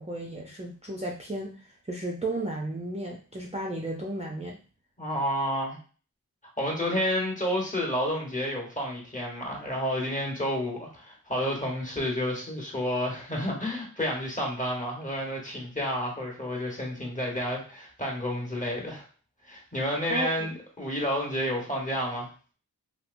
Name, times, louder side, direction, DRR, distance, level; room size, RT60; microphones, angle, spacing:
voice 1, 0.0-4.6 20.1-20.5, right 1 dB, 20° right, -2 dB, 0.5 m, -34 dB
voice 2, 5.0-5.8 6.4-19.1 19.4-22.3, equal, 20° left, -1 dB, 1.2 m, -30 dB
2.9 x 2.8 x 2.5 m, 0.38 s
wide cardioid pair, 50°, 36 cm